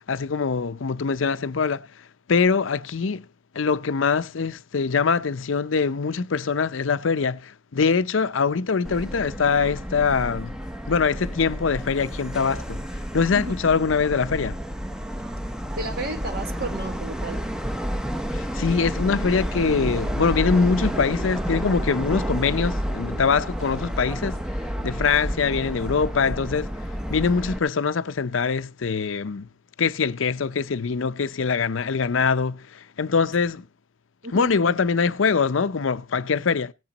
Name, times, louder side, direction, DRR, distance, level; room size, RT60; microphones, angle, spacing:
voice 1, 0.1-1.9 2.3-3.3 3.5-10.6 10.9-12.8 13.1-14.6 18.3-24.4 24.8-26.7 27.1-29.5 29.8-33.6 34.3-36.7, left 5 dB, 75° left, 0.6 m, -23 dB
Subway metro underground, 8.8-27.6, equal, 5° right, 0.7 m, -30 dB
voice 2, 15.8-17.4 34.2-34.5, right 2 dB, 55° right, 1.4 m, -32 dB
17.5 x 8.8 x 4.0 m
head